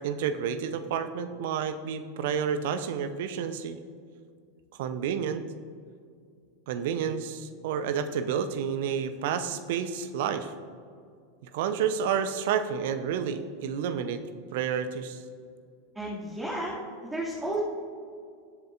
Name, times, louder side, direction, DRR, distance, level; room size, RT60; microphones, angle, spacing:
voice 1, 0.0-3.8 4.8-5.4 6.7-10.5 11.4-14.2 14.5-15.2, right 7 dB, 55° right, 10 dB, 0.7 m, -30 dB
voice 2, 15.9-17.6, right 1 dB, 10° right, -7 dB, 2.4 m, -33 dB
20.5 x 7.8 x 2.6 m, 2.3 s
figure-of-eight pair, 85°, 0 cm